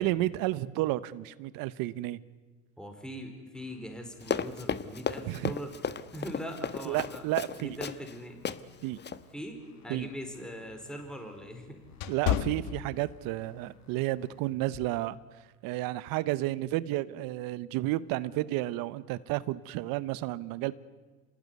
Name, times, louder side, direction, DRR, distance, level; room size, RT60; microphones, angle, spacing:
voice 1, 0.0-2.2 5.3-5.5 6.8-7.8 8.8-9.0 9.9-10.1 12.1-15.2 15.6-20.7, right 16 dB, 75° right, 17 dB, 1.0 m, -31 dB
voice 2, 2.8-5.7 6.1-7.2 7.6-8.4 9.3-11.8, equal, ahead, 4 dB, 4.5 m, -41 dB
sound 1, 3.5-14.5, left 6 dB, 50° left, 5.3 m, -59 dB
Run, 4.2-8.1 8.4-8.6 9.0-9.2, left 7 dB, 30° left, 1.2 m, -34 dB
sound 2, 9.7-13.5 13.9-14.1 14.7-15.0, left 11 dB, 75° left, 1.6 m, -34 dB
26.0 x 19.0 x 9.5 m, 1.3 s
supercardioid pair, 95°, 35 cm